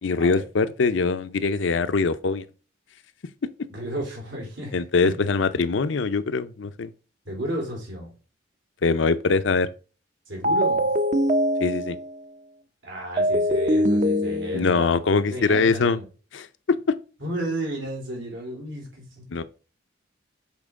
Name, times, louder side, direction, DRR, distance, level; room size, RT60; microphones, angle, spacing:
voice 1, 0.0-2.4 4.7-6.9 8.8-9.7 11.6-12.0 14.5-16.0 16.3-16.5 19.3-19.4, left 4 dB, 75° left, 0.6 m, -23 dB
voice 2, 3.7-4.8 5.0-5.1 7.2-8.1 10.3-10.9 12.8-14.9 15.3-16.0 17.2-19.4, right 1 dB, 80° right, 3.3 m, -32 dB
sound 1, 10.4-12.1 13.2-14.9, equal, 40° right, 0.6 m, -23 dB
7.2 x 4.6 x 3.6 m
head